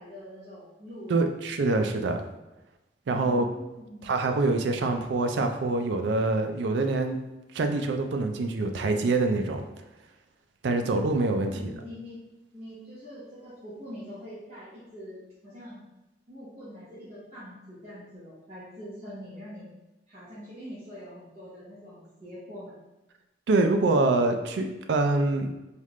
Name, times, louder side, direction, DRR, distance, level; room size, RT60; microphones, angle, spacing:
voice 1, 0.0-1.3 3.1-4.1 10.6-11.0 11.4-12.2 12.5-15.8 16.3-19.7 20.1-22.8, equal, 35° right, -11 dB, 1.0 m, -44 dB
voice 2, 1.1-2.2 3.1-3.4 4.0-7.2 7.5-9.6 10.6-11.7 23.5-25.5, right 2 dB, 70° right, 6 dB, 0.4 m, -25 dB
3.3 x 2.4 x 3.1 m, 1.0 s
head